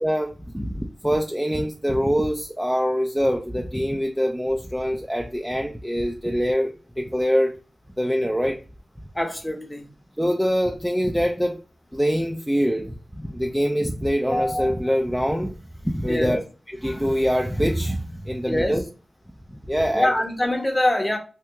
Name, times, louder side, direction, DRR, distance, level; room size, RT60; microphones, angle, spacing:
voice 1, 0.0-7.5 8.0-8.6 10.2-11.6 11.9-15.5 15.8-16.4 16.7-18.8 19.7-20.1, equal, ahead, 0.4 m, -24 dB
voice 2, 9.1-9.9 16.1-16.4 18.5-18.7 19.9-21.2, left 1 dB, 15° left, 0.8 m, -24 dB
2.9 x 2.3 x 3.3 m
cardioid pair, 60°, 0 cm